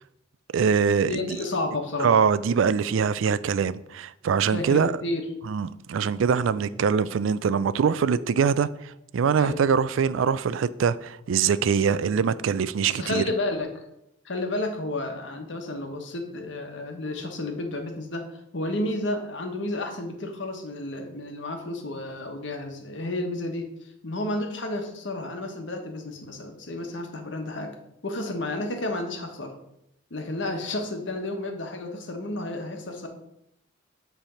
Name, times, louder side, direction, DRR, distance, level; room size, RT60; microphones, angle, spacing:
voice 1, 0.5-1.2 2.0-4.9 5.4-13.2, right 6 dB, 80° right, 0.4 m, -23 dB
voice 2, 1.1-2.2 4.5-5.3 9.3-9.6 12.8-13.8 14.2-18.3 18.5-27.8 28.0-29.6 30.1-33.1, left 2 dB, 65° left, 1.2 m, -31 dB
9.0 x 3.4 x 5.5 m
head